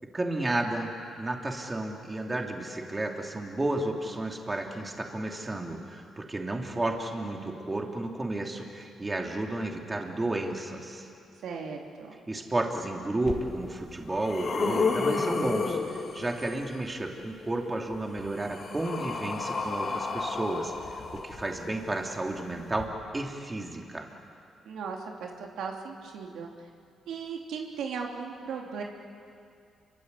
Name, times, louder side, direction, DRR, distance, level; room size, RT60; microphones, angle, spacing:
voice 1, 0.1-0.9 1.2-11.1 12.3-24.1, right 2 dB, 20° right, 1 dB, 3.2 m, -32 dB
voice 2, 11.4-12.1 24.6-26.5 27.1-28.8, right 5 dB, 80° right, 1 dB, 3.1 m, -37 dB
sound 1, 13.3-13.4 13.9-16.7 17.9-21.8 22.7-22.8, left 4 dB, 50° left, 3.3 m, -31 dB
29.0 x 24.0 x 8.5 m, 2.4 s
cardioid pair, 100°, 0 cm